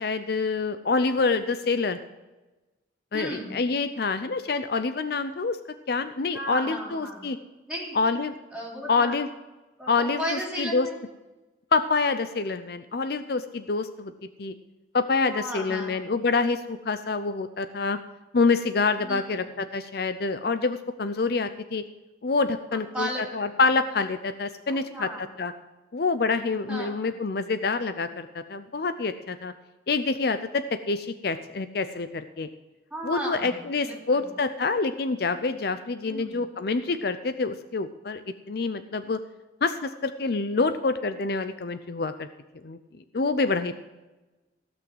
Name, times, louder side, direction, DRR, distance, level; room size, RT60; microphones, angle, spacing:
voice 1, 0.0-2.0 3.1-5.6 5.9-7.4 7.9-8.3 8.9-9.3 9.9-10.9 11.7-14.1 14.4-14.5 14.9-18.0 18.3-21.8 22.2-25.5 25.9-29.5 29.9-32.5 33.0-39.2 39.6-42.3 42.6-42.8 43.1-43.7, left 4 dB, 55° left, 10 dB, 0.5 m, -26 dB
voice 2, 3.1-3.5 6.3-7.3 7.7-8.0 8.5-9.2 9.8-11.0 15.3-16.1 19.0-19.5 22.7-23.5 24.7-25.2 26.7-27.1 32.9-33.6 33.8-34.3 36.1-36.4, right 1 dB, 5° right, -3 dB, 3.6 m, -35 dB
16.0 x 6.2 x 7.8 m, 1.1 s
head